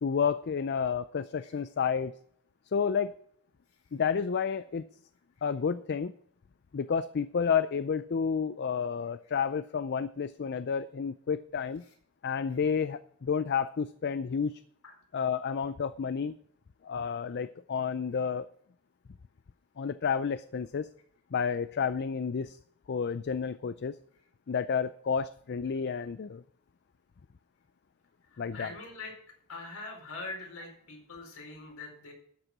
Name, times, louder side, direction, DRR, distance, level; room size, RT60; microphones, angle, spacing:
voice 1, 0.0-2.1 2.7-3.2 3.9-4.9 5.4-6.1 6.7-11.8 12.2-14.6 15.1-16.3 16.8-18.5 19.8-20.9 21.3-22.6 22.9-24.0 24.5-26.4 28.4-28.7, left 6 dB, 50° left, 14 dB, 0.4 m, -30 dB
voice 2, 28.2-29.1 29.5-32.1, left 3 dB, 65° left, 1 dB, 4.5 m, -43 dB
13.0 x 8.1 x 6.0 m, 0.65 s
head